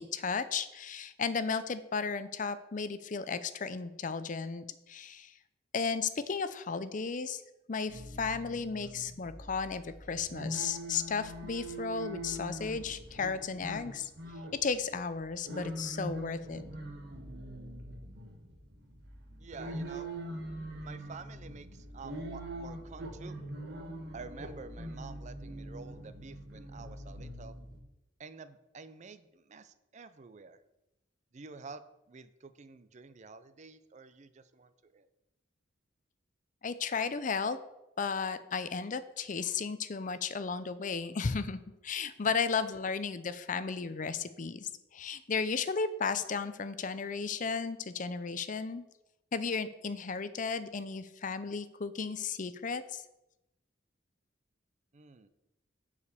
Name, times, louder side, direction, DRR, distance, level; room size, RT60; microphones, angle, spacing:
voice 1, 0.0-5.4 5.7-7.4 7.7-14.1 14.6-16.6 36.6-37.6 38.0-48.8 49.3-53.0, left 5 dB, 40° left, 13 dB, 0.5 m, -34 dB
sound 1, 7.9-27.8, right 1 dB, 60° right, 1.3 m, -43 dB
voice 2, 19.4-20.1 20.8-23.4 24.1-27.6 28.2-30.6 31.3-31.8 32.1-35.1 42.2-42.4 54.9-55.3, right 4 dB, 40° right, 12 dB, 0.5 m, -49 dB
6.9 x 4.9 x 6.8 m, 0.92 s
head